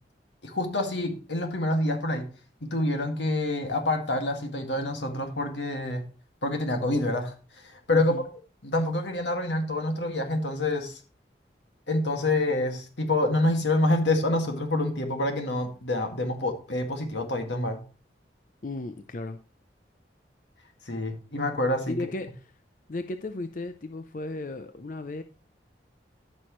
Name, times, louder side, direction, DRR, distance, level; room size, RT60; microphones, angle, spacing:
voice 1, 0.4-2.3 2.6-6.0 6.4-8.2 8.6-11.0 11.9-17.8 20.9-22.0, left 2 dB, 90° left, 4 dB, 2.0 m, -27 dB
voice 2, 7.9-8.2 18.6-19.4 21.9-22.5 22.9-25.2, left 2 dB, 45° left, 9 dB, 0.5 m, -35 dB
14.0 x 6.3 x 3.1 m, 0.36 s
head